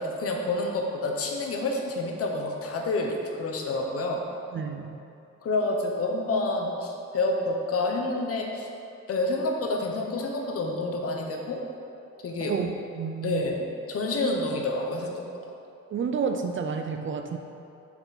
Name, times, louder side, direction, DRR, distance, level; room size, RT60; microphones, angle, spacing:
voice 1, 0.0-4.2 5.4-8.7 9.1-11.6 12.2-12.5 13.2-15.2, left 2 dB, 50° left, 1 dB, 0.9 m, -28 dB
voice 2, 4.5-4.9 12.5-13.4 15.9-17.4, right 6 dB, 40° right, 5 dB, 0.4 m, -30 dB
5.6 x 4.5 x 4.0 m, 2.6 s
cardioid pair, 90°, 30 cm